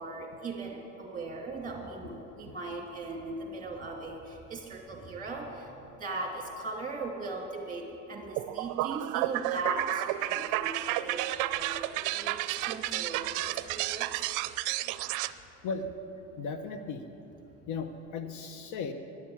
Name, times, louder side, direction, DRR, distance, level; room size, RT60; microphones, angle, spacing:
voice 1, 0.0-14.4 14.8-14.9, right 2 dB, 25° right, 0 dB, 2.8 m, -39 dB
sound 1, 8.4-15.3, right 16 dB, 65° right, 0.5 m, -31 dB
voice 2, 16.4-17.0 17.7-18.9, left 4 dB, 60° left, 8 dB, 0.9 m, -36 dB
11.0 x 7.4 x 9.7 m, 2.9 s
supercardioid pair, 105°, 34 cm